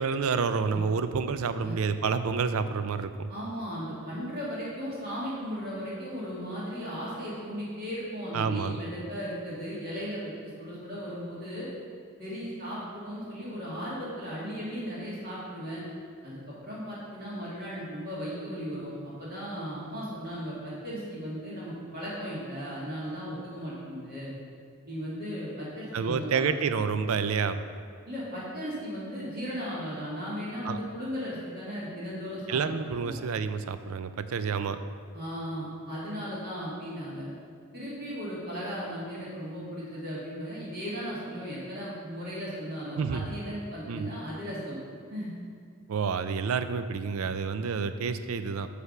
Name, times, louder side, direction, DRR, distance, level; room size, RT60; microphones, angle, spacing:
voice 1, 0.0-3.3 8.3-8.8 25.9-27.6 30.7-30.8 32.5-34.8 43.0-43.2 43.9-44.1 45.9-48.7, right 5 dB, 70° right, 11 dB, 0.4 m, -29 dB
voice 2, 3.3-11.7 12.2-15.8 16.2-24.3 24.9-26.5 28.1-32.6 33.0-33.2 35.1-37.3 37.7-44.8 45.1-45.3 47.6-47.7, equal, 45° right, -8 dB, 2.2 m, -36 dB
9.6 x 3.4 x 6.6 m, 2.1 s
head